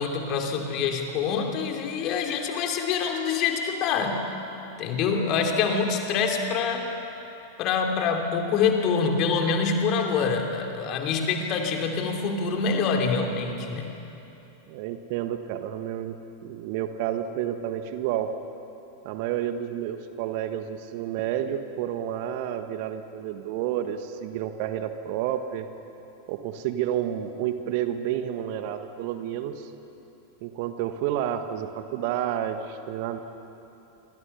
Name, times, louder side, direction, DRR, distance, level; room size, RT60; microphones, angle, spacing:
voice 1, 0.0-4.2 4.8-6.9 7.6-13.9, left 5 dB, 40° left, 3 dB, 3.1 m, -25 dB
voice 2, 14.7-16.2 16.4-18.3 19.0-25.7 26.3-29.7 30.4-33.2, right 10 dB, 45° right, 8 dB, 1.5 m, -30 dB
28.0 x 24.5 x 5.8 m, 2.9 s
figure-of-eight pair, 90°, 0 cm